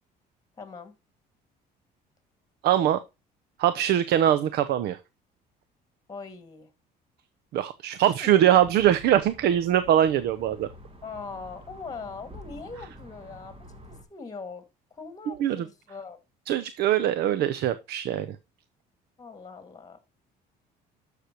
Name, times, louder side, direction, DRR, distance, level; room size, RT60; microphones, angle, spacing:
voice 1, 0.6-0.9 6.1-6.7 8.2-8.4 11.0-13.6 13.9-14.6 14.9-16.2 19.2-20.0, left 4 dB, 20° left, 1.9 m, -41 dB
voice 2, 2.6-3.0 3.6-5.0 7.5-10.7 15.3-15.7 16.5-18.4, right 11 dB, 70° right, 0.7 m, -22 dB
sound 1, 8.5-14.0, equal, 35° right, 2.1 m, -48 dB
11.5 x 6.7 x 2.9 m
cardioid pair, 110°, 17 cm